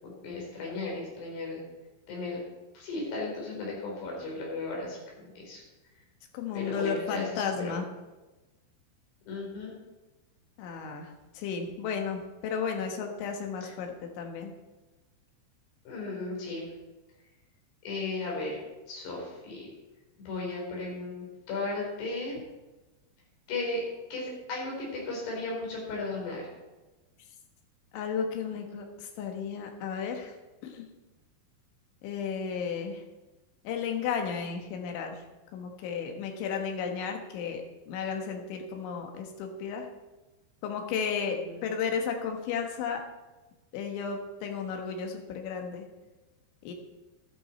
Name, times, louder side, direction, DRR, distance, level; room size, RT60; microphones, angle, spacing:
voice 1, 0.0-1.6 2.1-2.4 2.7-5.6 6.5-7.8 9.3-9.7 13.6-13.7 15.9-16.7 17.8-18.6 18.9-19.7 20.3-22.4 23.5-23.8 24.1-26.5 41.3-41.7, left 2 dB, 65° left, -2 dB, 6.1 m, -35 dB
voice 2, 6.3-7.9 10.6-14.5 27.9-30.3 30.6-30.9 32.0-33.0 33.7-35.2 35.5-39.9 40.6-43.0 43.7-45.9 46.6-46.7, left 6 dB, 80° left, 3 dB, 3.9 m, -33 dB
13.5 x 12.5 x 4.4 m, 1.1 s
omnidirectional pair, 5.3 m